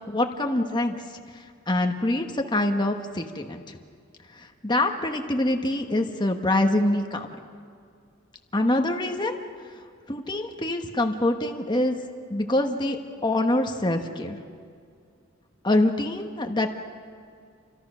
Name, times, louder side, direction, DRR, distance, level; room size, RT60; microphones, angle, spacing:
voice 1, 0.1-0.9 1.3-3.8 4.3-7.3 8.5-9.4 10.1-12.0 12.3-14.4 15.6-16.7, left 1 dB, 20° left, 4 dB, 1.3 m, -25 dB
29.5 x 25.0 x 6.3 m, 2.2 s
head